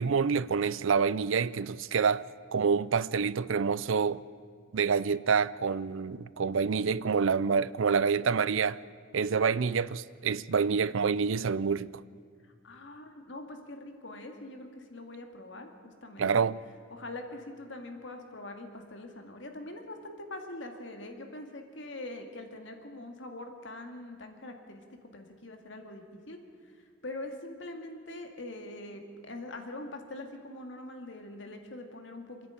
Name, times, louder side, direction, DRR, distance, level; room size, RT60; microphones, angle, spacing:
voice 1, 0.0-2.2 2.5-4.2 4.7-8.8 9.1-11.9 16.2-16.6, right 5 dB, 75° right, 0.5 m, -27 dB
voice 2, 12.4-16.4 16.9-26.4 26.6-32.5, left 2 dB, 60° left, 2.2 m, -43 dB
27.0 x 10.5 x 9.1 m
head